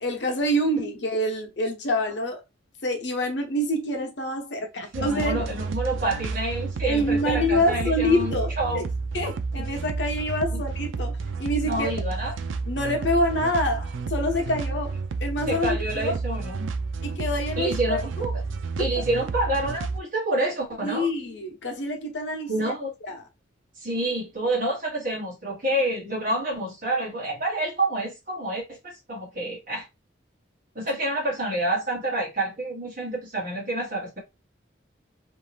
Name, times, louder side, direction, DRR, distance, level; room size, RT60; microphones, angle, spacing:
voice 1, 0.0-2.4 2.8-5.5 6.8-8.8 9.1-11.9 12.7-16.2 17.0-18.0 19.0-19.1 20.8-22.7 23.0-23.2, left 1 dB, 65° left, 0.8 m, -26 dB
voice 2, 4.9-8.8 9.6-9.7 10.5-10.6 11.6-12.3 15.5-16.7 17.6-18.4 18.8-21.1 22.5-22.9 23.8-29.8 30.7-34.2, right 1 dB, 45° right, 1.3 m, -28 dB
sound 1, 4.9-20.0, right 4 dB, 90° right, 0.4 m, -31 dB
2.7 x 2.2 x 3.2 m
head